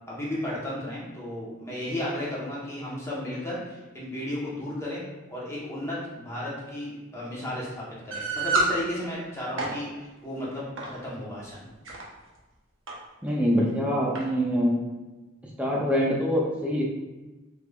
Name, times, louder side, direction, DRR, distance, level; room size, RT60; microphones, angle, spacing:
voice 1, 0.1-5.0 5.3-11.6, left 1 dB, 15° left, -6 dB, 0.9 m, -34 dB
sound 1, 8.1-8.7 9.4-9.8 10.8-11.0 11.7-12.0 12.9-13.0 13.3-13.4 14.1-14.3, right 3 dB, 70° right, 0.7 m, -27 dB
voice 2, 13.2-14.7 15.6-16.8, equal, 5° right, -4 dB, 0.4 m, -24 dB
3.4 x 3.3 x 2.3 m, 1.1 s
head